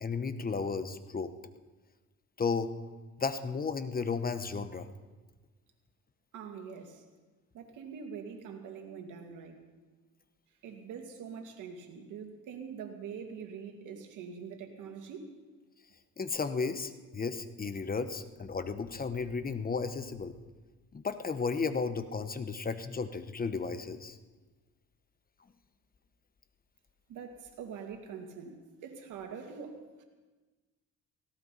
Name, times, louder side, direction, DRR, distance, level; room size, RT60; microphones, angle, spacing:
voice 1, 0.0-1.3 2.4-2.7 3.2-4.9 16.2-20.3 20.9-24.2, left 4 dB, 30° left, 10 dB, 1.0 m, -34 dB
voice 2, 6.3-7.0 7.5-9.6 10.6-15.3 27.1-30.0, right 6 dB, 85° right, 3 dB, 2.2 m, -44 dB
18.0 x 16.5 x 4.1 m, 1.3 s
cardioid pair, 90°, 30 cm